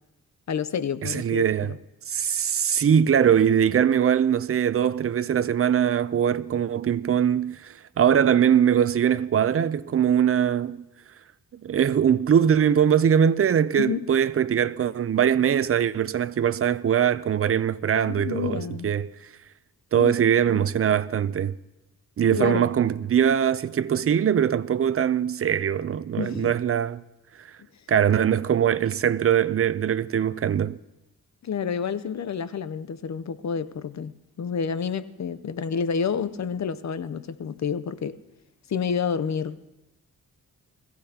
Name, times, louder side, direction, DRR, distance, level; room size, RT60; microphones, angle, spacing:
voice 1, 0.5-1.8 13.8-14.1 18.0-18.9 20.0-20.1 20.5-20.7 22.3-22.7 26.2-26.5 31.4-38.2 38.7-39.7, left 6 dB, 50° left, 0.7 m, -29 dB
voice 2, 1.0-1.7 2.1-10.9 11.6-19.1 19.9-21.6 22.2-27.0 27.9-30.8, right 8 dB, 40° right, 0.5 m, -22 dB
21.0 x 15.5 x 2.9 m
wide cardioid pair, 105°, 36 cm